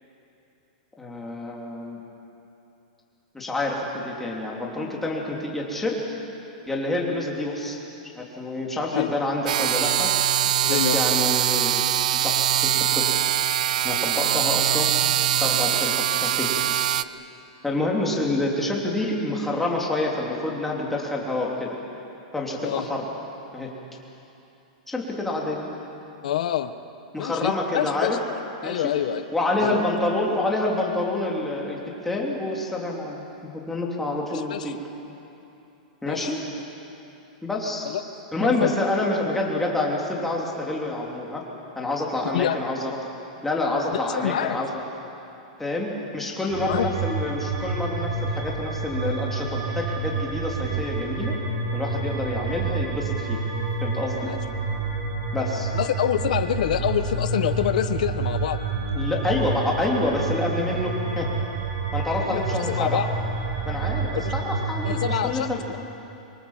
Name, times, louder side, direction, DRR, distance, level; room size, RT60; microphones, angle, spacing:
voice 1, 1.0-2.0 3.3-6.0 6.7-7.8 8.1-10.1 10.7-11.8 12.2-13.2 13.8-14.9 15.4-16.5 17.6-21.7 22.3-23.0 23.5-23.7 24.9-25.6 27.1-28.2 28.6-28.8 29.3-34.8 36.0-36.5 37.4-37.9 38.3-41.4 41.7-42.9 43.4-44.8 45.6-51.4 51.7-53.4 53.8-54.3 55.3-55.7 58.9-61.3 61.9-63.0 63.7-65.8, left 2 dB, 5° left, -3 dB, 3.1 m, -27 dB
sound 1, 9.5-17.0, right 11 dB, 70° right, 0.7 m, -22 dB
voice 2, 10.6-11.0 22.6-22.8 26.2-26.7 27.2-28.2 28.6-29.3 29.6-29.9 34.3-34.7 36.0-36.3 37.8-38.0 38.4-38.7 42.3-42.7 43.9-44.6 46.6-46.9 54.2-54.4 55.7-58.6 62.2-63.1 64.1-64.3 64.8-65.8, left 11 dB, 65° left, 11 dB, 1.1 m, -26 dB
sound 2, 46.5-65.2, right 3 dB, 45° right, 4.8 m, -28 dB
25.5 x 24.5 x 7.4 m, 2.9 s
supercardioid pair, 165°, 4 cm